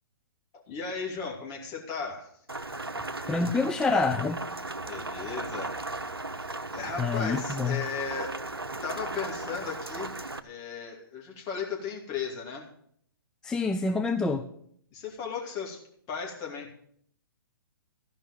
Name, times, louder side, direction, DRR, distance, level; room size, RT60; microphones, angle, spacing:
voice 1, 0.5-2.3 4.8-5.8 6.7-8.4 8.8-10.1 10.4-12.6 14.9-15.8 16.1-16.9, left 5 dB, 30° left, -1 dB, 2.7 m, -36 dB
Rain, 2.5-10.4, right 2 dB, 90° right, 0.7 m, -36 dB
voice 2, 3.3-4.4 7.0-7.8 13.4-14.5, left 3 dB, 5° left, 5 dB, 0.4 m, -27 dB
14.0 x 5.4 x 7.6 m, 0.64 s
figure-of-eight pair, 125°, 12 cm